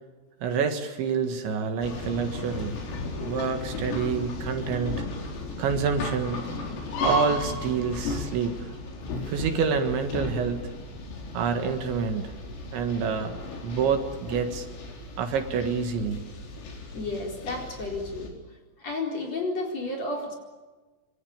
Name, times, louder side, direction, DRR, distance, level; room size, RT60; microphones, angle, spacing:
voice 1, 0.4-2.8 3.3-5.0 5.6-6.4 7.0-8.6 9.3-10.6 11.3-12.3 12.7-14.7 15.2-16.3, right 6 dB, 70° right, 6 dB, 3.8 m, -27 dB
sound 1, 1.8-18.3, left 2 dB, 75° left, 6.8 m, -35 dB
voice 2, 16.9-18.3 18.8-20.3, left 2 dB, 35° left, 1 dB, 4.9 m, -32 dB
26.0 x 25.0 x 8.8 m, 1.3 s
omnidirectional pair, 5.9 m